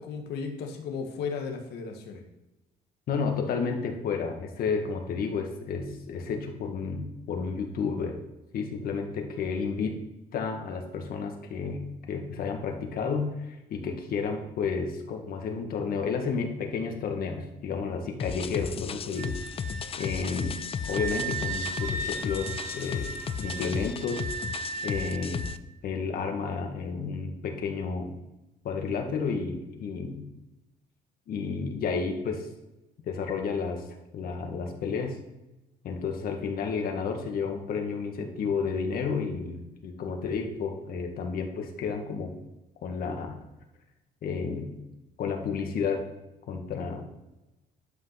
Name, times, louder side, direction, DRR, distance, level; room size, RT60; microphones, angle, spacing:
voice 1, 0.0-2.2, left 5 dB, 75° left, 3 dB, 1.9 m, -35 dB
voice 2, 3.1-8.2 8.5-9.9 10.3-19.3 20.0-24.3 24.8-25.5 25.8-28.1 28.6-30.3 31.3-32.5 33.0-33.8 34.1-35.2 35.8-42.3 42.8-43.3 44.2-44.8 45.2-46.0 46.5-47.1, left 5 dB, 60° left, 4 dB, 2.0 m, -31 dB
sound 1, 18.2-25.6, left 7 dB, 35° left, 0.5 m, -35 dB
Wind instrument woodwind instrument, 19.2-25.6, right 4 dB, 45° right, 1.8 m, -37 dB
11.5 x 5.7 x 5.9 m, 0.98 s
cardioid pair, 110°, 17 cm